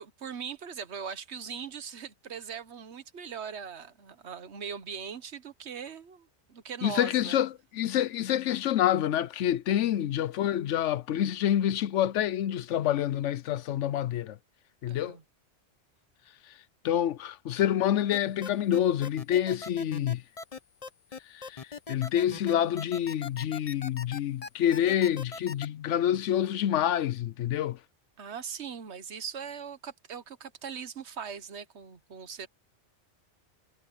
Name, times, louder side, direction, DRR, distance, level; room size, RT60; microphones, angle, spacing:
voice 1, 0.0-7.4 9.7-9.8 14.9-15.2 28.2-32.5, right 7 dB, 70° right, 1.3 m, -40 dB
voice 2, 6.8-14.4 14.8-15.2 16.8-20.2 21.3-27.8, left 11 dB, 90° left, 1.0 m, -27 dB
sound 1, 18.1-25.7, left 4 dB, 35° left, 0.9 m, -40 dB
omnidirectional pair, 1.2 m